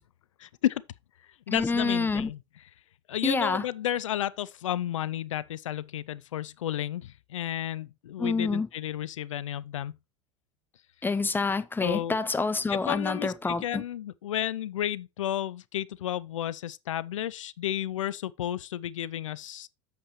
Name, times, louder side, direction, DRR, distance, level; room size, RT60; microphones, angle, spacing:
voice 1, 0.4-0.8 1.2-2.4 3.1-10.0 11.8-12.2 12.7-19.7, left 12 dB, 90° left, 0.4 m, -32 dB
voice 2, 1.5-2.3 3.2-3.6 8.2-8.7 11.0-13.8, left 4 dB, 10° left, 0.8 m, -27 dB
8.5 x 7.4 x 3.1 m
hypercardioid pair, 85°, 16 cm